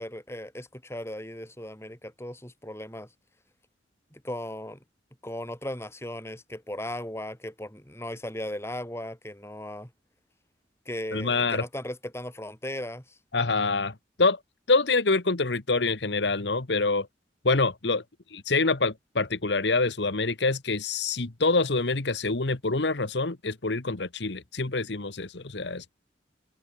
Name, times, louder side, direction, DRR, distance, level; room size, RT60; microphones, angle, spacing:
voice 1, 0.0-3.1 4.1-4.8 5.2-9.9 10.9-13.2, left 1 dB, 15° left, 6.2 m, -37 dB
voice 2, 11.1-11.6 13.3-14.4 14.7-17.1 17.4-18.0 18.3-25.9, left 3 dB, 75° left, 1.4 m, -26 dB
head